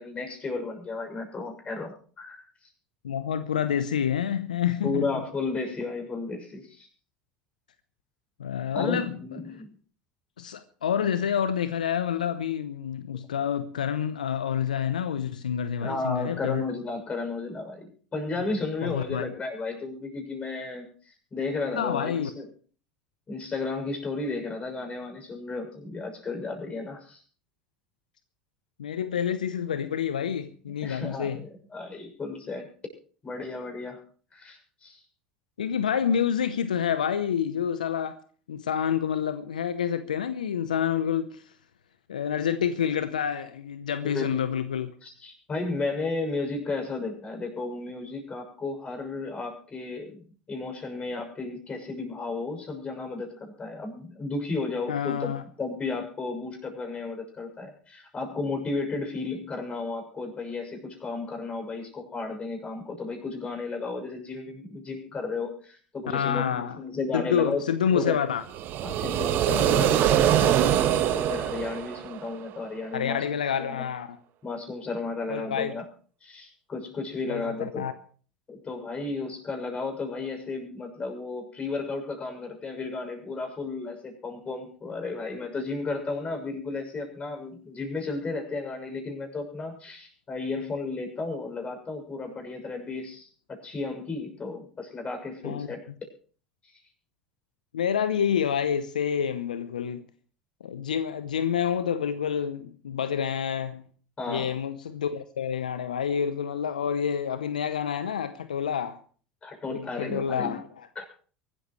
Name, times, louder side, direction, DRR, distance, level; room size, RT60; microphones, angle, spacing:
voice 1, 0.0-2.7 4.8-6.9 8.7-9.7 15.8-20.9 21.3-22.5 23.3-27.2 30.8-32.7 33.2-34.0 34.3-35.0 44.0-44.4 45.0-50.2 50.5-55.3 55.6-67.6 67.9-68.2 68.8-73.2 73.6-73.9 74.4-75.8 76.2-77.9 78.5-95.8 96.6-96.7 104.2-104.5 109.4-110.6 111.0-111.1, left 3 dB, 30° left, 6.9 m, -33 dB
voice 2, 3.0-5.1 8.4-9.2 10.4-16.6 18.8-19.3 21.7-22.3 28.8-31.4 35.6-38.2 38.5-41.5 42.1-44.9 54.9-55.4 66.1-66.8 67.1-68.4 72.9-74.1 75.3-75.7 77.3-77.9 95.4-95.7 97.7-100.1 100.6-103.8 104.3-109.0 109.7-110.9, left 8 dB, 85° left, 0.8 m, -28 dB
sound 1, 68.5-72.5, right 11 dB, 50° right, 1.7 m, -23 dB
24.0 x 13.0 x 3.2 m
hypercardioid pair, 75°, 4 cm